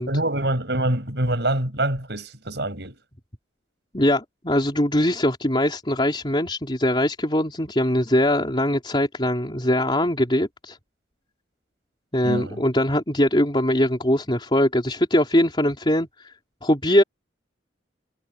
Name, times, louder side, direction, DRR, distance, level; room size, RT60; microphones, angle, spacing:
voice 1, 0.0-3.0 12.2-12.6, right 1 dB, 65° right, 6.9 m, -25 dB
voice 2, 3.9-10.8 12.1-16.3 16.6-17.0, left 1 dB, 25° left, 3.6 m, -21 dB
head